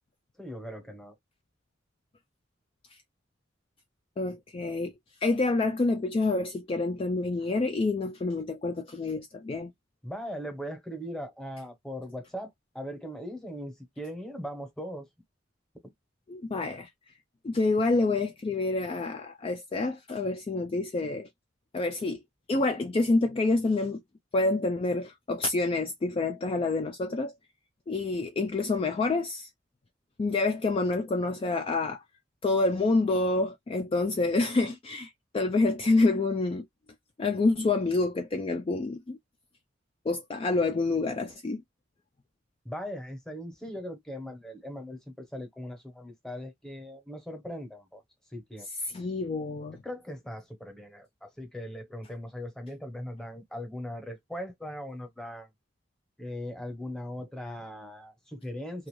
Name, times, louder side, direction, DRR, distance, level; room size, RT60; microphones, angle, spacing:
voice 1, 0.4-1.2 10.0-15.1 42.6-48.0 48.3-48.7 49.8-55.5 56.2-58.9, equal, 5° left, 0.9 m, -39 dB
voice 2, 4.2-4.9 5.2-9.7 16.3-16.9 17.4-21.3 21.7-22.2 22.5-24.0 24.3-27.3 27.9-29.5 30.2-32.0 32.4-36.7 37.2-39.2 40.1-41.6 48.9-49.8, left 3 dB, 30° left, 0.3 m, -27 dB
2.5 x 2.3 x 3.1 m
head